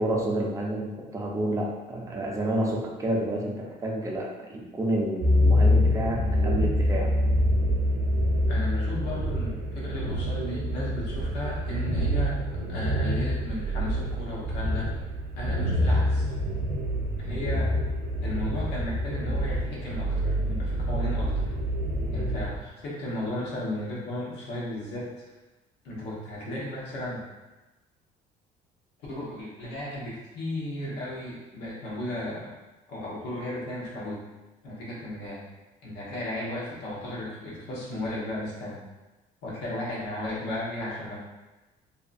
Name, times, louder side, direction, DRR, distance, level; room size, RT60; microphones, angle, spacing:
voice 1, 0.0-7.1, right 1 dB, 20° right, -2 dB, 0.5 m, -29 dB
sound 1, 5.2-22.6, equal, 80° right, 0.5 m, -27 dB
sound 2, 6.2-17.1, equal, 45° left, 0.5 m, -32 dB
voice 2, 8.5-12.4 12.7-15.0 15.4-16.3 17.2-17.7 18.2-21.5 22.1-25.2 25.8-27.2 29.1-32.5 32.9-34.2 34.6-35.4 35.8-38.8 39.4-41.1, left 1 dB, 80° left, -5 dB, 0.9 m, -35 dB
2.6 x 2.3 x 2.5 m, 1.1 s
cardioid pair, 110°, 17 cm